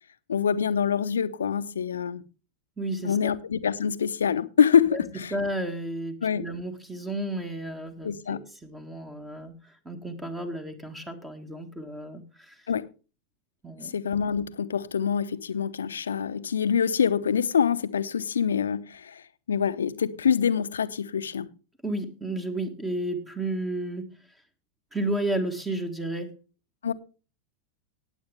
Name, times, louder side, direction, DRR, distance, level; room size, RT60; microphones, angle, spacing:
voice 1, 0.3-2.2 3.0-5.3 6.2-6.5 8.0-8.4 12.7-12.9 13.8-21.5 26.8-26.9, left 7 dB, 70° left, 0.8 m, -25 dB
voice 2, 2.8-3.3 4.9-5.1 5.3-12.6 13.6-13.9 21.8-24.1 24.9-26.3, right 1 dB, 10° right, 1.7 m, -32 dB
18.5 x 8.0 x 3.4 m
figure-of-eight pair, 90°, 0 cm